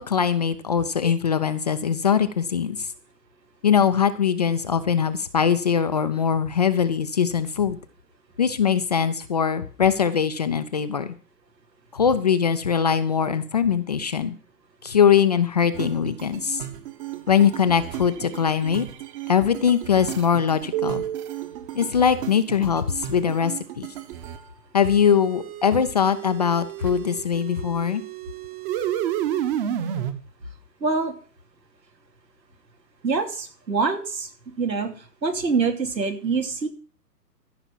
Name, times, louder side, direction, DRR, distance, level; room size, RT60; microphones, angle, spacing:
voice 1, 0.0-2.9 3.6-7.8 8.4-11.1 11.9-14.3 14.8-16.6 17.3-18.9 19.3-21.0 21.7-23.9 24.7-28.0, left 7 dB, 25° left, 11 dB, 0.4 m, -21 dB
sound 1, 15.7-24.4 24.8-30.1, right 11 dB, 35° right, 1.4 m, -32 dB
voice 2, 30.8-31.1 33.0-34.3 34.6-34.9 35.2-36.7, right 4 dB, 90° right, 5 dB, 3.1 m, -24 dB
14.0 x 5.9 x 7.3 m, 0.41 s
hypercardioid pair, 140°, 49 cm